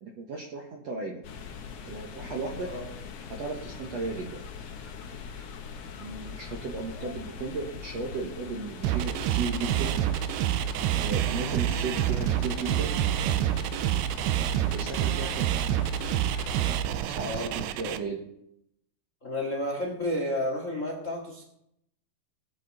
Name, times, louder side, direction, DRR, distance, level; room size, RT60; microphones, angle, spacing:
voice 1, 0.0-1.2 1.9-2.7 3.4-4.4 6.0-10.0 11.0-13.0 14.7-15.5 16.3-18.2, right 4 dB, 60° right, 0 dB, 1.9 m, -35 dB
sound 1, 1.2-16.8, left 6 dB, 65° left, 1.6 m, -42 dB
sound 2, 8.8-18.0, right 11 dB, 85° right, 2.7 m, -27 dB
voice 2, 19.2-21.4, left 1 dB, 50° left, 2 dB, 0.9 m, -31 dB
19.5 x 9.5 x 4.1 m, 0.78 s
omnidirectional pair, 4.6 m